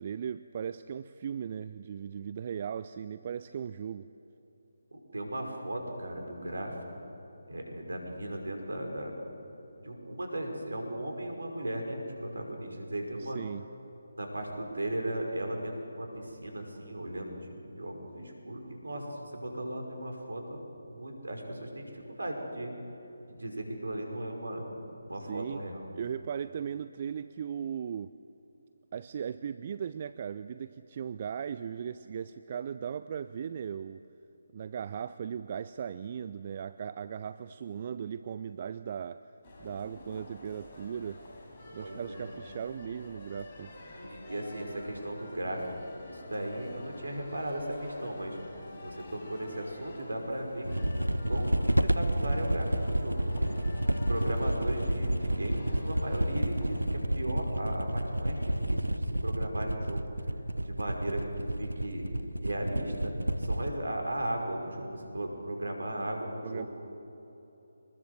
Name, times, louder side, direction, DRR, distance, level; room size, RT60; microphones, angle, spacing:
voice 1, 0.0-4.1 13.2-13.7 25.3-25.6 25.9-28.1 28.9-34.0 34.5-39.2 39.6-41.2 41.7-44.1 66.4-66.7, right 8 dB, 35° right, 13 dB, 0.5 m, -38 dB
voice 2, 4.9-6.7 7.5-9.1 9.8-13.4 14.2-22.7 23.3-24.6 25.0-25.9 41.8-42.3 44.0-45.8 46.1-48.4 48.8-53.2 53.7-60.1 60.6-61.2 61.6-62.1 62.4-63.1 63.4-66.7, right 1 dB, 65° right, 2 dB, 5.6 m, -36 dB
sound 1, 39.4-56.8, left 1 dB, 30° left, 5.8 m, -48 dB
sound 2, 50.6-63.7, right 1 dB, 80° right, 1.0 m, -30 dB
25.5 x 21.0 x 8.0 m, 3.0 s
figure-of-eight pair, 150°, 0 cm